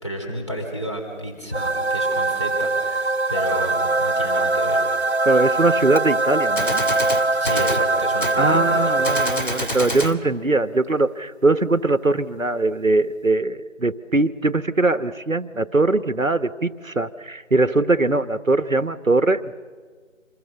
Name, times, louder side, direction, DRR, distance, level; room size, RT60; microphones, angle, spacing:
voice 1, 0.0-4.9 7.3-9.0, equal, 20° left, -1 dB, 4.2 m, -31 dB
sound 1, 1.5-9.8, right 2 dB, 55° right, 0.9 m, -22 dB
voice 2, 5.2-6.8 8.4-19.5, right 2 dB, 85° right, 13 dB, 1.5 m, -21 dB
Gunshot gunfire, 6.0-6.1 6.6-7.9 8.2-8.4 9.0-10.2, equal, 40° left, 1.6 m, -27 dB
27.0 x 21.5 x 6.8 m, 1.5 s
figure-of-eight pair, 175°, 39 cm